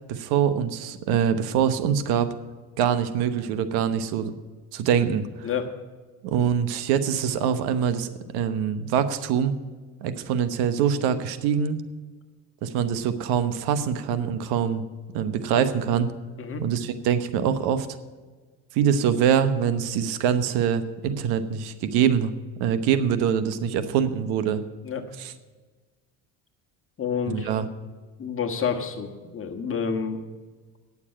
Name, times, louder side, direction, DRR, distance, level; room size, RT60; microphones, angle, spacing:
voice 1, 0.1-2.3 2.8-4.3 4.7-5.5 6.2-9.6 10.0-11.8 12.6-14.8 15.1-16.1 16.6-17.9 18.7-22.3 22.6-24.6 25.2-25.3 27.3-27.7, right 8 dB, 75° right, 12 dB, 1.0 m, -24 dB
voice 2, 5.4-5.7 16.4-16.6 24.8-25.0 27.0-27.5 28.2-30.2, left 6 dB, 35° left, 6 dB, 1.6 m, -29 dB
9.9 x 7.2 x 8.8 m, 1.3 s
supercardioid pair, 90°, 38 cm